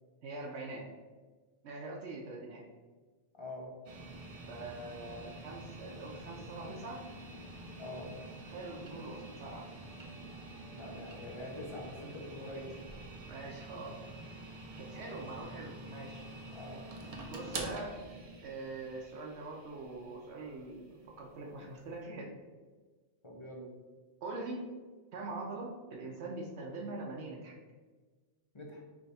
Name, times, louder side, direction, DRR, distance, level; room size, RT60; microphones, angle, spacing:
voice 1, 0.2-0.9 1.6-2.7 4.5-7.1 8.5-9.7 12.5-12.6 13.3-14.0 14.8-16.3 17.2-18.0 18.4-22.3 24.2-24.6 25.1-27.6, right 2 dB, 70° right, -1 dB, 0.9 m, -43 dB
voice 2, 3.4-3.7 7.8-8.1 10.7-12.7 14.8-15.2 16.5-16.8 23.2-23.7 28.5-28.8, left 1 dB, 30° left, -1 dB, 0.6 m, -45 dB
sound 1, 3.8-22.0, right 2 dB, 40° right, 0.5 m, -47 dB
3.5 x 3.2 x 4.0 m, 1.3 s
omnidirectional pair, 1.2 m